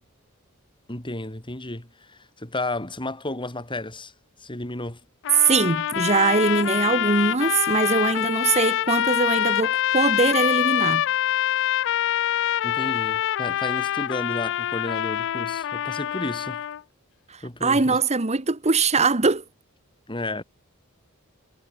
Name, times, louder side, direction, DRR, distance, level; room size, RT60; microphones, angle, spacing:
voice 1, 0.9-4.1 4.4-5.0 12.6-16.6 17.4-18.0 20.1-20.4, left 2 dB, 25° left, 3.9 m, -32 dB
sound 1, 5.2-16.8, left 12 dB, 60° left, 0.4 m, -25 dB
voice 2, 5.4-11.0 17.3-19.4, right 4 dB, 30° right, 1.2 m, -22 dB
head